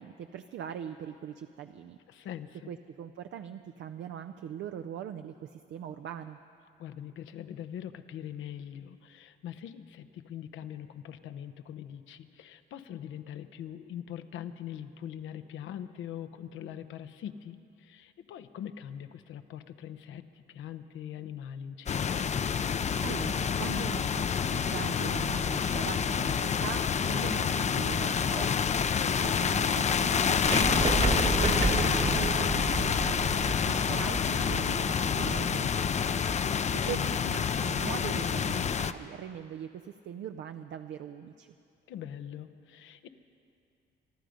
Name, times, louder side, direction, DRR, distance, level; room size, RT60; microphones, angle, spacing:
voice 1, 0.0-2.0 2.7-6.4 23.0-36.2 36.7-41.5, right 9 dB, 70° right, 7 dB, 0.5 m, -41 dB
voice 2, 2.1-2.7 6.8-22.2 28.8-29.2 33.4-33.8 41.9-43.1, left 10 dB, 80° left, 10 dB, 0.8 m, -42 dB
sound 1, 21.9-38.9, left 7 dB, 35° left, 0.5 m, -28 dB
sound 2, 26.3-33.8, left 5 dB, 60° left, 1.3 m, -48 dB
sound 3, 30.4-36.4, right 3 dB, 35° right, 1.3 m, -32 dB
24.5 x 11.5 x 5.1 m, 2.6 s
cardioid pair, 90°, 20 cm